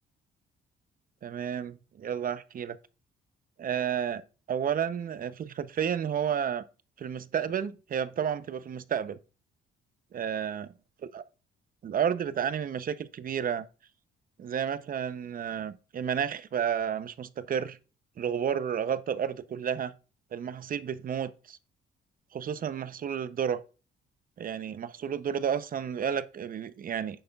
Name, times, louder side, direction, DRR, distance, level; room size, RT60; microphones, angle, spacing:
voice 1, 1.2-2.8 3.6-4.2 4.5-6.6 7.0-9.2 10.1-10.7 11.1-11.2 11.8-13.7 14.4-17.8 18.2-19.9 20.3-21.6 22.3-23.6 24.4-27.2, right 8 dB, 45° right, 0.6 m, -31 dB
9.3 x 6.7 x 2.3 m
cardioid pair, 90°, 20 cm